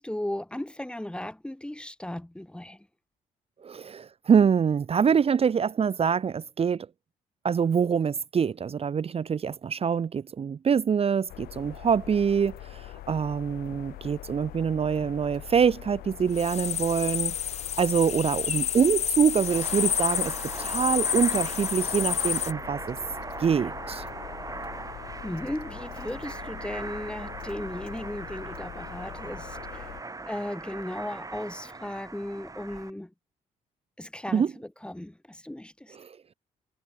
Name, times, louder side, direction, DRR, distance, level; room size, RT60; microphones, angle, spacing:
voice 1, 0.0-2.8 25.2-29.9 30.2-33.1 34.0-36.0, left 1 dB, 5° left, 2.0 m, -36 dB
voice 2, 3.6-6.9 7.4-17.3 17.8-23.0 23.4-24.0 34.3-34.5 35.9-36.2, right 7 dB, 40° right, 0.9 m, -25 dB
sound 1, 11.3-30.0, left 16 dB, 85° left, 4.8 m, -43 dB
sound 2, 16.3-22.5, left 9 dB, 45° left, 0.5 m, -29 dB
sound 3, 19.3-32.9, right 3 dB, 20° right, 6.1 m, -40 dB
cardioid pair, 80°, 15 cm